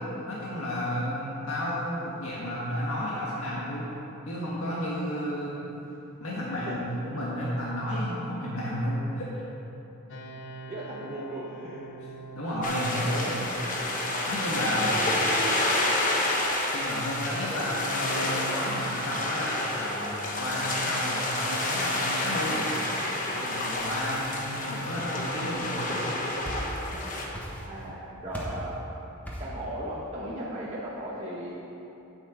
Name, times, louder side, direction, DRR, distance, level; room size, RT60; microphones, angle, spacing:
voice 1, 0.2-3.9 4.3-5.5 6.2-9.3 12.3-13.3 14.3-14.9 16.7-22.6 23.3-26.1, equal, 90° left, -6 dB, 1.5 m, -32 dB
sound 1, 10.1-22.9, right 3 dB, 60° left, 0.8 m, -49 dB
voice 2, 10.7-11.8 12.9-13.5 14.7-15.6 16.2-16.4 17.5-18.2 23.9-24.6 27.4-28.8 29.4-31.5, right 1 dB, 30° right, -7 dB, 1.0 m, -38 dB
sound 2, 12.6-27.3, left 2 dB, 40° left, 1.1 m, -29 dB
sound 3, 26.4-27.0 27.3-27.9 28.3-28.7 29.3-29.6, equal, 10° left, 1.2 m, -37 dB
8.8 x 7.7 x 5.0 m, 3.0 s
head